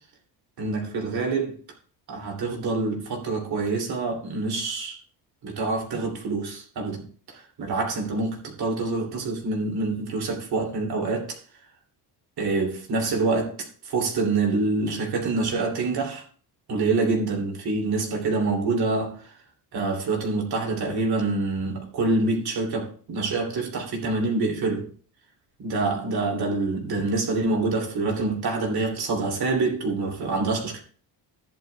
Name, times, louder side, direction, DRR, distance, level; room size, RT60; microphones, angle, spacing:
voice 1, 0.6-1.5 2.1-5.0 5.4-7.0 7.6-11.4 12.4-13.5 13.9-16.2 16.7-19.2 19.7-24.9 25.6-30.8, right 3 dB, 60° right, 2.9 m, -26 dB
15.0 x 10.5 x 2.3 m
cardioid pair, 140°, 43 cm